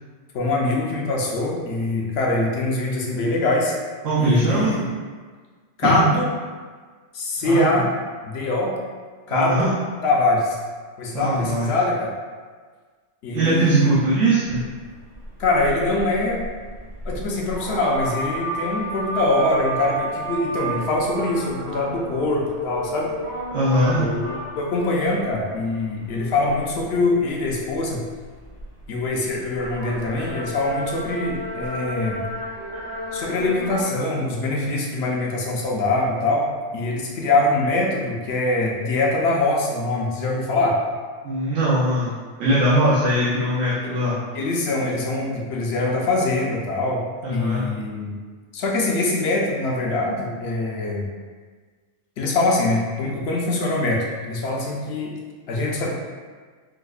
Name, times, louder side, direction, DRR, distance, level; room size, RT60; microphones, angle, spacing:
voice 1, 0.3-3.7 4.2-4.8 5.8-6.3 7.1-7.9 8.2-8.8 9.3-9.7 10.0-10.6 11.0-12.1 13.2-14.0 15.4-16.4 17.0-23.1 23.9-28.0 28.9-32.2 33.1-36.5 36.7-40.8 43.8-43.9 44.3-47.0 47.3-48.2 48.5-51.1 52.2-55.2 55.5-55.9, left 2 dB, 65° left, -2 dB, 0.7 m, -23 dB
voice 2, 4.0-4.8 5.8-6.1 7.4-7.7 9.3-9.7 11.1-11.7 13.3-14.6 23.5-24.0 41.2-44.2 47.2-47.7, right 1 dB, 90° right, -9 dB, 1.1 m, -21 dB
sound 1, 14.4-33.8, right 1 dB, 75° right, 1.5 m, -33 dB
4.8 x 2.0 x 2.3 m, 1.5 s
omnidirectional pair, 1.3 m